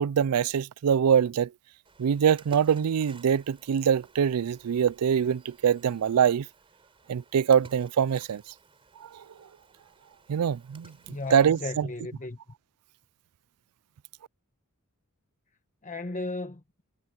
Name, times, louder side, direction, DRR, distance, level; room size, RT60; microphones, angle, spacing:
voice 1, 0.0-1.5 2.0-6.5 7.1-8.4 9.0-9.2 10.3-10.9 11.3-11.9, right 8 dB, 85° right, 0.4 m, -24 dB
Splash splatter, 1.8-11.8, right 3 dB, 25° right, 5.1 m, -55 dB
voice 2, 11.1-12.4 15.8-16.6, left 2 dB, 35° left, 1.1 m, -35 dB
head